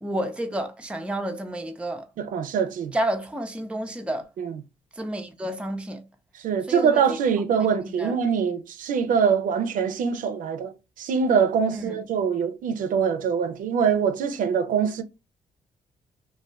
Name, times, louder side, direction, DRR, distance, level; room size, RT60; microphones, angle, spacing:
voice 1, 0.0-2.1 2.9-4.3 5.0-6.0 6.7-7.0 7.9-8.1 11.7-12.0, right 1 dB, 10° right, 0.5 m, -30 dB
voice 2, 2.2-2.9 4.4-4.6 6.4-15.0, right 6 dB, 75° right, 0.5 m, -24 dB
2.4 x 2.2 x 3.2 m
cardioid pair, 75°, 14 cm